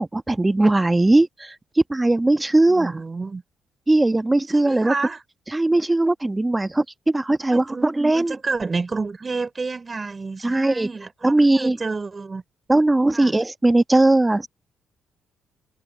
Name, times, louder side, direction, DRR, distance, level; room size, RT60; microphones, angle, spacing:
voice 1, 0.0-3.0 3.9-4.9 5.5-8.4 10.4-10.9 11.2-11.8 12.7-14.5, right 2 dB, 15° right, 1.4 m, -19 dB
voice 2, 2.7-3.4 4.5-5.2 7.5-12.4 13.1-13.3, right 4 dB, 30° right, 4.8 m, -30 dB
cardioid pair, 75°, 0 cm